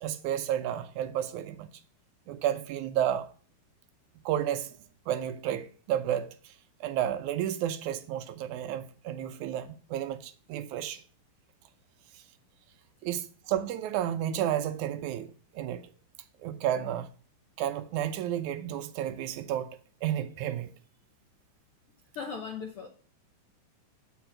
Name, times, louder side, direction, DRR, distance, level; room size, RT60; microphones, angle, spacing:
voice 1, 0.0-1.7 2.3-3.3 4.3-4.8 5.1-6.5 6.8-11.0 13.0-15.9 16.4-17.1 17.6-19.7 20.0-20.7, right 11 dB, 80° right, 1.9 m, -31 dB
voice 2, 22.1-22.9, left 6 dB, 70° left, 1.3 m, -37 dB
8.0 x 5.2 x 5.8 m
omnidirectional pair, 3.6 m